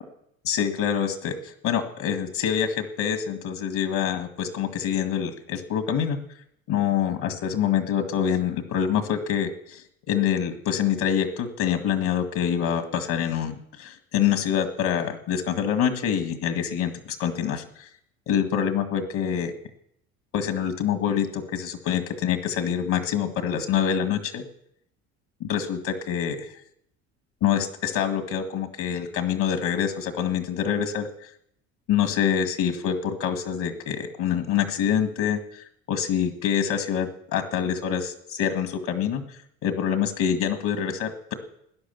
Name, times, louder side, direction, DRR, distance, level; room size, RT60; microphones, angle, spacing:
voice 1, 0.4-6.2 6.7-17.9 18.3-19.5 20.3-24.4 25.4-26.5 27.4-31.3 31.9-41.3, left 8 dB, 65° left, 7 dB, 2.0 m, -26 dB
18.5 x 10.0 x 7.1 m, 0.74 s
supercardioid pair, 105°, 31 cm